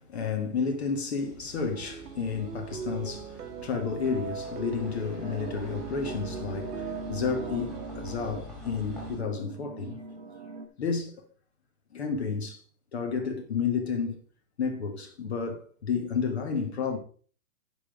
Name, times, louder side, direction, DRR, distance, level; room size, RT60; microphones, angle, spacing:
voice 1, 0.0-10.0 10.8-11.2 11.9-12.6 12.9-14.2 14.6-17.0, left 5 dB, 45° left, 1.4 m, -31 dB
sound 1, 1.2-9.2, left 2 dB, ahead, 2.1 m, -46 dB
sound 2, 1.7-7.9, right 8 dB, 85° right, 1.1 m, -40 dB
sound 3, 5.2-10.7, right 3 dB, 35° right, 0.8 m, -41 dB
9.9 x 5.3 x 5.0 m
hypercardioid pair, 175°, 46 cm